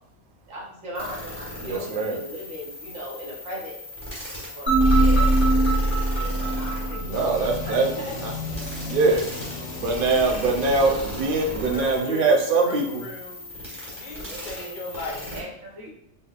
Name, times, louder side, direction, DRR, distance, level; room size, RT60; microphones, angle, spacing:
voice 1, 0.5-3.8 4.5-5.4 6.0-7.4 7.6-8.2 14.3-14.9 15.3-15.9, equal, 85° right, -5 dB, 1.5 m, -38 dB
sound 1, 0.9-15.4, left 1 dB, 5° left, 1.3 m, -37 dB
voice 2, 1.6-2.2 7.1-7.9 8.2-8.3 8.8-9.3 9.8-13.0, right 3 dB, 55° right, 1 dB, 0.7 m, -22 dB
sound 2, 4.7-7.7, right 1 dB, 35° right, 1.6 m, -21 dB
sound 3, 6.9-11.8, left 2 dB, 70° left, 1.1 m, -36 dB
voice 3, 11.5-13.4 13.9-15.3, left 2 dB, 45° left, -1 dB, 0.8 m, -37 dB
4.1 x 3.2 x 2.4 m, 0.74 s
omnidirectional pair, 1.3 m